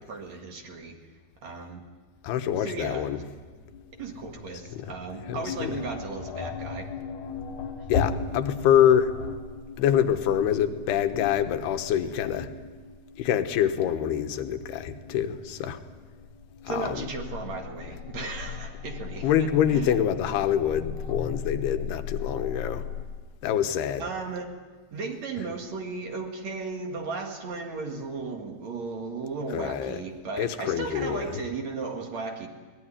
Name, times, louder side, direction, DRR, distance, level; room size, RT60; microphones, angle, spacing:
voice 1, 0.1-1.0 1.4-1.8 2.6-3.2 4.0-6.9 16.7-19.3 19.7-20.0 24.0-24.5 24.9-32.5, right 4 dB, 50° right, 3 dB, 2.7 m, -35 dB
voice 2, 2.2-3.2 4.7-4.9 5.3-5.7 7.9-9.1 9.8-12.5 13.2-15.8 16.6-17.1 19.2-22.9 23.4-24.1 29.5-30.0 30.4-31.4, left 9 dB, 90° left, 8 dB, 3.1 m, -25 dB
sound 1, 3.4-23.1, left 6 dB, 60° left, 2.3 m, -37 dB
22.5 x 18.5 x 10.0 m, 1.4 s
omnidirectional pair, 4.5 m